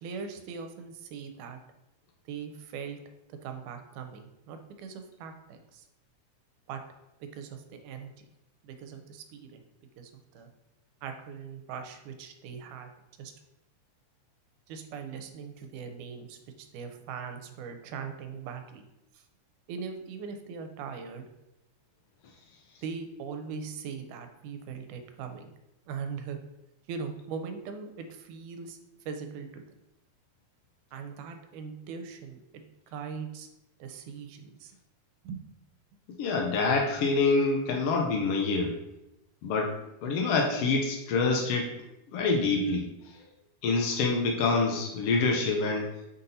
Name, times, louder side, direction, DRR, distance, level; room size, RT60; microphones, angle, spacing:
voice 1, 0.0-1.6 2.3-3.0 3.4-5.8 6.7-6.8 7.2-8.1 8.6-9.6 10.0-10.5 11.0-12.9 13.2-13.3 14.7-18.9 19.7-21.3 22.8-25.5 25.9-26.4 26.9-28.8 29.1-29.6 30.9-32.6 32.9-33.5 33.8-34.7 35.2-35.4, right 6 dB, 80° right, 6 dB, 2.2 m, -40 dB
voice 2, 36.2-38.7 39.4-39.8 40.0-41.7 42.1-42.9 43.6-45.9, left 3 dB, 90° left, 1 dB, 1.3 m, -26 dB
5.8 x 4.1 x 3.9 m, 0.91 s
omnidirectional pair, 3.6 m